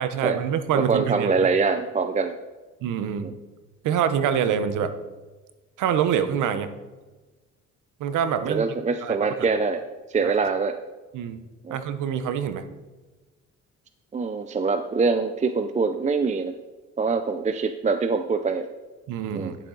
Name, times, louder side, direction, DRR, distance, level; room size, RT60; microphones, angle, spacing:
voice 1, 0.0-1.3 2.8-3.3 3.8-4.9 5.8-6.7 8.0-8.7 9.0-9.3 10.2-10.3 11.1-11.4 11.7-12.6 19.1-19.6, right 8 dB, 85° right, 10 dB, 0.9 m, -25 dB
voice 2, 0.7-2.3 3.2-3.3 8.4-9.8 10.1-10.7 11.6-11.8 14.1-16.5 17.0-18.6 19.3-19.5, right 4 dB, 25° right, 9 dB, 0.5 m, -24 dB
11.0 x 7.3 x 3.9 m, 1.2 s
cardioid pair, 90°, 30 cm